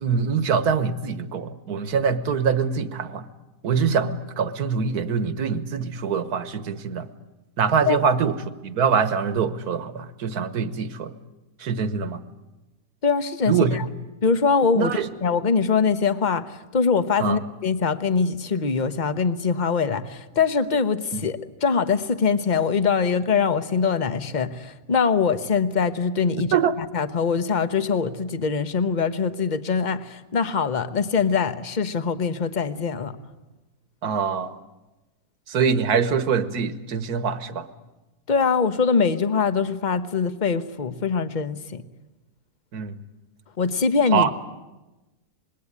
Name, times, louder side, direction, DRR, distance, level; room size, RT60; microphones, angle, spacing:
voice 1, 0.0-3.3 3.6-7.1 7.6-8.3 8.6-11.1 11.6-12.2 13.5-13.8 14.8-15.1 17.2-17.4 21.1-21.2 26.5-26.7 34.0-34.5 35.5-37.7 42.7-42.9 44.1-44.3, right 6 dB, 65° right, 12 dB, 1.7 m, -24 dB
voice 2, 13.0-13.8 14.2-33.1 38.3-41.8 43.6-44.3, left 5 dB, 30° left, 11 dB, 1.0 m, -23 dB
26.5 x 21.0 x 9.9 m, 1.1 s
omnidirectional pair, 1.8 m